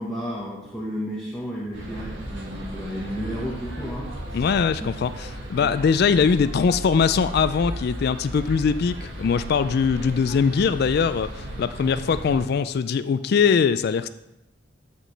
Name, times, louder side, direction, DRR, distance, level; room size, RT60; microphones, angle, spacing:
voice 1, 0.0-4.4 5.6-5.7, equal, 5° left, -8 dB, 1.3 m, -32 dB
sound 1, 1.7-12.4, right 1 dB, 65° right, 1.8 m, -35 dB
voice 2, 4.3-14.1, left 6 dB, 55° left, 13 dB, 0.3 m, -22 dB
13.0 x 5.1 x 3.3 m, 0.90 s
head